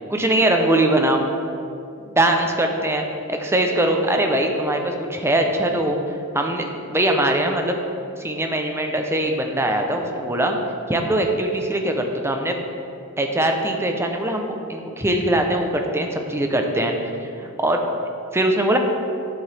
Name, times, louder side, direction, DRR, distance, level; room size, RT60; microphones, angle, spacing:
voice 1, 0.1-1.2 2.0-6.0 6.3-7.8 8.2-10.6 10.9-12.6 13.2-17.8 18.3-18.8, right 1 dB, 10° right, 3 dB, 0.7 m, -21 dB
11.5 x 7.2 x 3.4 m, 2.6 s
head